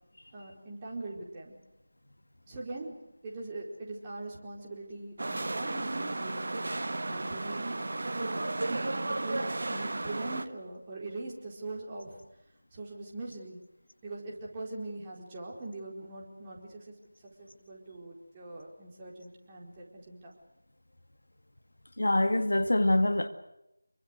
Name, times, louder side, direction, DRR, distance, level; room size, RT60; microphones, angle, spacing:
voice 1, 0.3-1.6 2.5-7.8 8.1-12.2 12.7-13.6 14.0-16.9 17.4-20.3, right 2 dB, 15° right, 4.3 m, -42 dB
sound 1, 5.2-10.5, right 2 dB, 50° right, 1.4 m, -33 dB
voice 2, 22.0-23.3, left 1 dB, 65° left, 2.2 m, -25 dB
28.0 x 23.5 x 6.5 m
figure-of-eight pair, 165°, 0 cm